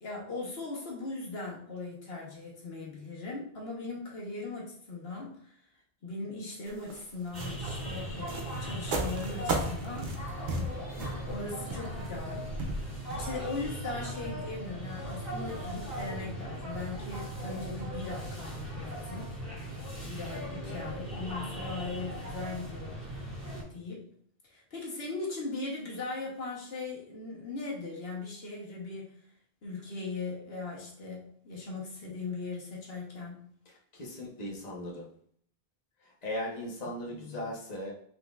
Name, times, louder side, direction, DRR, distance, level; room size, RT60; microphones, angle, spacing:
voice 1, 0.0-5.6 6.0-10.1 10.9-12.5 13.2-19.3 20.0-23.0 23.7-24.1 24.5-29.1 29.6-33.5 37.1-37.4, left 3 dB, 75° left, -3 dB, 1.4 m, -39 dB
sound 1, 6.7-13.7, right 2 dB, 55° right, 0.8 m, -36 dB
sound 2, 7.3-23.6, equal, 15° right, 2.0 m, -38 dB
voice 2, 33.6-35.0 36.0-37.9, left 1 dB, 40° left, -4 dB, 1.1 m, -38 dB
5.7 x 3.8 x 2.4 m, 0.64 s
omnidirectional pair, 1.0 m